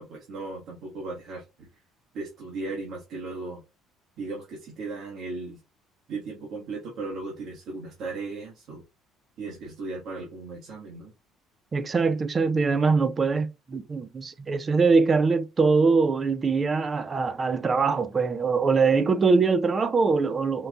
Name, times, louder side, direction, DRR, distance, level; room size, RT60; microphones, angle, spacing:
voice 1, 0.0-1.7 2.1-3.6 4.2-5.6 6.1-8.8 9.4-11.1, right 3 dB, 65° right, 1.5 m, -36 dB
voice 2, 11.7-20.7, right 4 dB, 30° right, 0.6 m, -23 dB
4.6 x 2.6 x 3.5 m
supercardioid pair, 85°, 0 cm